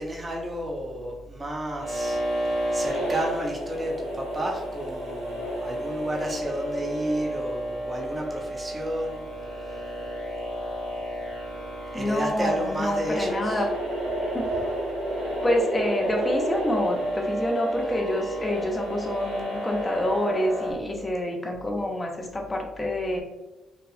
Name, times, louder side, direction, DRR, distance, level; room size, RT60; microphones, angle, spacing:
voice 1, 0.0-2.2 2.7-9.2 11.9-13.6, right 1 dB, 20° right, -1 dB, 0.6 m, -31 dB
sound 1, 1.8-20.7, right 1 dB, 85° right, 1.3 m, -31 dB
voice 2, 11.9-13.7 14.2-14.5 15.2-23.2, left 1 dB, 20° left, 1 dB, 0.5 m, -27 dB
2.7 x 2.2 x 2.4 m, 1.1 s
cardioid pair, 90°, 0 cm